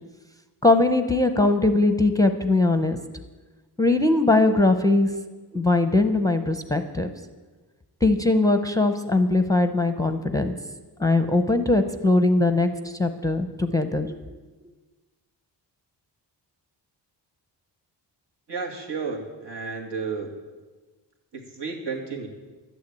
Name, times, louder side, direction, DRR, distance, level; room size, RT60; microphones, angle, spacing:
voice 1, 0.6-3.0 3.8-5.1 5.5-7.1 8.0-10.5 11.0-14.2, left 2 dB, 10° left, 8 dB, 0.6 m, -21 dB
voice 2, 18.5-20.3 21.3-22.3, right 4 dB, 70° right, 1 dB, 2.4 m, -32 dB
12.0 x 9.7 x 8.4 m, 1.3 s
wide cardioid pair, 155°, 43 cm